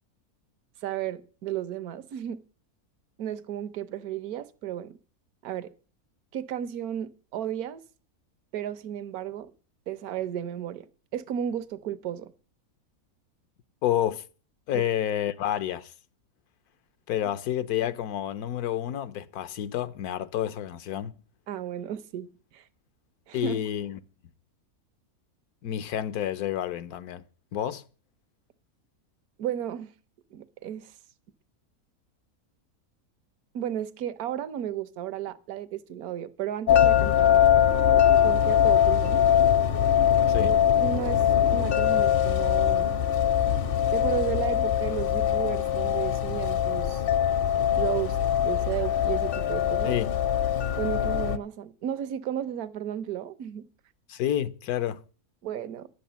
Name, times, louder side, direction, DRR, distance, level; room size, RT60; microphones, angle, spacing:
voice 1, 0.8-2.4 3.2-5.0 5.4-5.7 6.3-7.8 8.5-9.5 9.9-10.9 11.1-12.3 14.7-14.8 21.5-22.7 23.3-23.6 29.4-29.9 30.3-30.9 33.5-37.4 38.2-39.2 40.4-41.2 41.5-43.0 43.9-47.0 47.8-48.2 48.4-50.0 50.7-53.7 55.4-55.9, right 10 dB, 80° right, 1.3 m, -33 dB
voice 2, 13.8-14.2 14.7-15.9 17.1-21.1 23.3-24.0 25.6-27.2 27.5-27.8 40.3-40.5 49.8-50.1 54.1-55.0, left 11 dB, 85° left, 1.3 m, -29 dB
sound 1, 36.7-51.4, left 10 dB, 55° left, 0.7 m, -22 dB
11.0 x 8.4 x 6.9 m
omnidirectional pair, 1.6 m